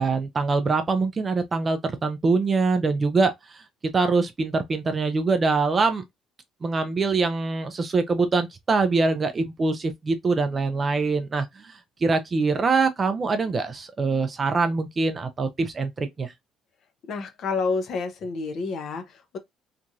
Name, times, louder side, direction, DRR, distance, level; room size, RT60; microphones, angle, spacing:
voice 1, 0.0-3.6 3.9-6.0 6.6-11.7 12.0-16.3, right 4 dB, 20° right, 0.3 m, -24 dB
voice 2, 17.1-19.4, left 4 dB, 45° left, 0.5 m, -29 dB
2.9 x 2.3 x 2.6 m
cardioid pair, 175°, 0 cm